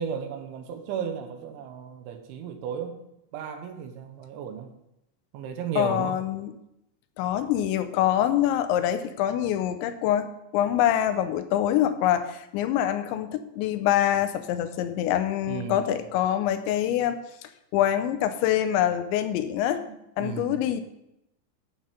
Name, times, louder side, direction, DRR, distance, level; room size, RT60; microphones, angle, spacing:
voice 1, 0.0-3.0 3.3-4.7 5.3-6.2 15.5-15.9 19.9-20.6, right 8 dB, 80° right, 6 dB, 3.5 m, -34 dB
voice 2, 5.8-6.5 7.2-10.3 10.5-19.8 20.2-20.8, left 11 dB, 80° left, 10 dB, 3.0 m, -25 dB
14.0 x 5.9 x 5.2 m, 0.84 s
omnidirectional pair, 5.4 m